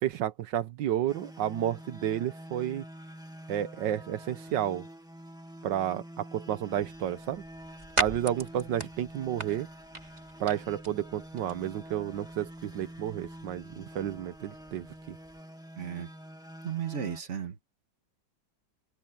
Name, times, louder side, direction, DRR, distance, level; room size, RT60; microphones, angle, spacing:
voice 1, 0.0-2.8 3.5-4.9 5.6-7.4 8.0-9.7 10.4-15.2, right 11 dB, 75° right, 1.5 m, -31 dB
sound 1, 1.1-17.2, equal, ahead, 1.9 m, -47 dB
sound 2, 6.7-15.4, right 2 dB, 20° right, 3.0 m, -40 dB
voice 2, 15.8-16.1 16.6-17.6, right 8 dB, 40° right, 1.8 m, -34 dB
open air
omnidirectional pair, 2.0 m